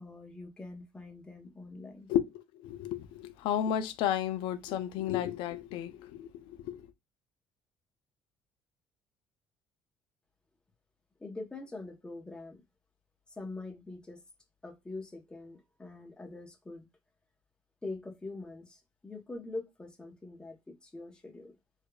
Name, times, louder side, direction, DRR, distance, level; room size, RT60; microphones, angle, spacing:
voice 1, 0.0-2.1 11.2-12.6 13.4-14.2 14.6-16.9 17.8-21.5, left 2 dB, 10° left, 0.7 m, -44 dB
voice 2, 2.1-6.8, left 10 dB, 80° left, 0.4 m, -33 dB
4.8 x 2.3 x 2.2 m
cardioid pair, 150°, 8 cm